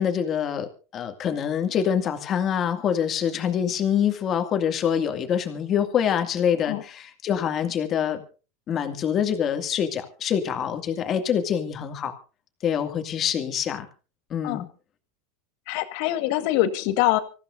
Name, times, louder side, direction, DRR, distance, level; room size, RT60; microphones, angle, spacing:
voice 1, 0.0-8.2 8.7-12.1 12.6-13.9 14.3-14.7, left 8 dB, 35° left, 6 dB, 2.3 m, -25 dB
voice 2, 15.7-17.2, left 14 dB, 60° left, 9 dB, 1.7 m, -24 dB
25.5 x 14.5 x 2.7 m, 0.34 s
supercardioid pair, 125°, 0 cm